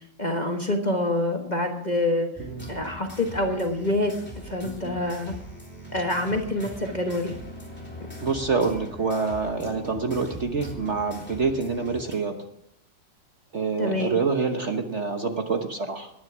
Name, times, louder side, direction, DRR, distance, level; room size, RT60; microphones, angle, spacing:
voice 1, 0.2-2.3 2.7-4.1 4.4-5.4 5.9-7.3 13.8-14.2, left 1 dB, 25° left, 3 dB, 1.4 m, -26 dB
sound 1, 2.4-12.1, equal, 5° left, 3.5 m, -41 dB
voice 2, 2.4-2.8 8.2-12.4 13.5-16.1, right 4 dB, 45° right, 5 dB, 1.3 m, -26 dB
19.0 x 10.5 x 6.2 m, 0.82 s
omnidirectional pair, 2.0 m